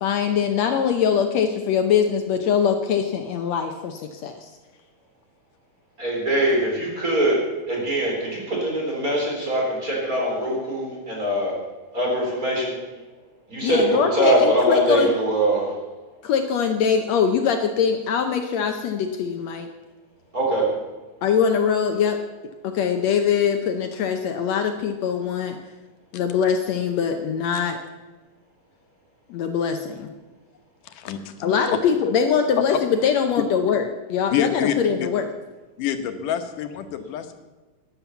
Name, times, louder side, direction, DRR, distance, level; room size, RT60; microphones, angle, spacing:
voice 1, 0.0-4.4 13.6-15.1 16.2-19.7 21.2-22.2 22.6-25.6 26.1-27.8 29.3-30.1 31.4-33.8 34.1-35.3, left 7 dB, 70° left, 6 dB, 1.8 m, -22 dB
voice 2, 6.0-7.4 7.7-11.5 11.9-12.8 13.5-15.7 20.3-20.6, right 1 dB, 25° right, -3 dB, 4.1 m, -22 dB
voice 3, 30.8-31.3 34.3-35.1 35.8-37.3, left 9 dB, 85° left, 8 dB, 2.7 m, -27 dB
13.0 x 10.5 x 7.0 m, 1.2 s
omnidirectional pair, 3.6 m